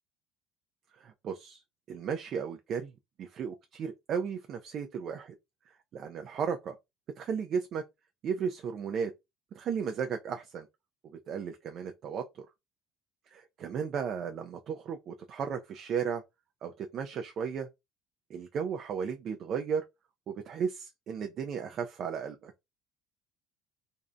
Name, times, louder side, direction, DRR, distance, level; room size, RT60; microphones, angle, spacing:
voice 1, 1.0-1.6 1.9-2.9 3.2-5.3 5.9-6.8 7.2-7.8 8.2-9.1 9.6-10.7 11.1-12.5 13.3-16.2 16.6-17.7 18.3-19.8 20.3-22.5, right 6 dB, 55° right, 0.3 m, -35 dB
2.5 x 2.0 x 2.4 m
supercardioid pair, 80°, 0 cm